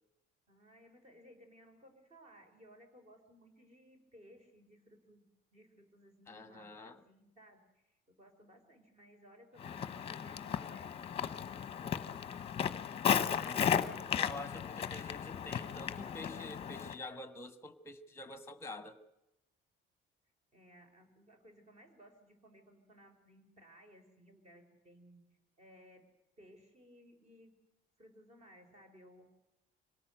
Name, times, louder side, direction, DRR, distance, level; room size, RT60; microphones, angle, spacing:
voice 1, 0.5-5.2 5.5-10.9 11.8-12.7 20.5-25.2 25.6-26.1 26.4-27.5 28.0-29.3, equal, 30° right, 6 dB, 4.3 m, -60 dB
voice 2, 6.3-7.0 12.8-12.9 13.3-19.0, left 2 dB, 10° left, 11 dB, 1.3 m, -47 dB
Walk footsteps, 9.6-17.0, left 8 dB, 30° left, 0.9 m, -35 dB
25.5 x 18.0 x 7.8 m, 0.92 s
cardioid pair, 170°, 21 cm